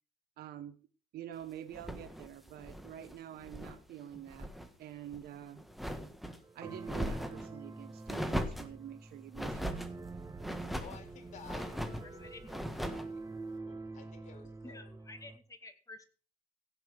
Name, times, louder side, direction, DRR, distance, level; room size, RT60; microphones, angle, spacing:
voice 1, 0.4-0.9 1.1-4.5 4.8-5.6 6.5-9.9, right 11 dB, 70° right, 10 dB, 1.1 m, -47 dB
sound 1, 1.7-3.8 4.1-4.7 5.1-6.4 6.8-7.5 8.1-8.8 9.3-9.9 10.4-11.0 11.4-12.1 12.5-13.1, equal, ahead, 1.5 m, -39 dB
sound 2, 6.4-15.4, right 3 dB, 20° right, 1.4 m, -47 dB
voice 2, 10.8-14.9, left 6 dB, 45° left, 3 dB, 4.2 m, -54 dB
voice 3, 12.0-12.5 14.6-16.0, left 2 dB, 20° left, 5 dB, 2.5 m, -51 dB
16.5 x 5.9 x 6.3 m, 0.40 s
cardioid pair, 110°, 17 cm